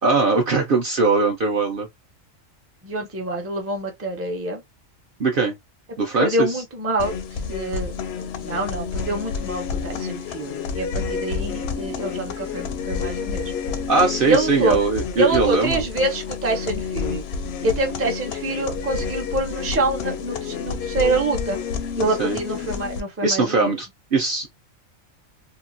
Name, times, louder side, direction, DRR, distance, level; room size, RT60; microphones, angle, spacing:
voice 1, 0.0-1.9 5.2-5.5 6.0-6.5 13.9-15.9 22.2-22.4 23.2-24.5, right 3 dB, 55° right, 0.7 m, -20 dB
voice 2, 2.8-4.6 6.2-7.1 7.5-13.5 14.3-14.8 15.2-17.2 17.6-21.6 22.0-23.7, right 2 dB, 15° right, 0.5 m, -26 dB
sound 1, 7.0-23.0, left 6 dB, 65° left, 0.7 m, -29 dB
2.9 x 2.3 x 2.5 m
omnidirectional pair, 1.4 m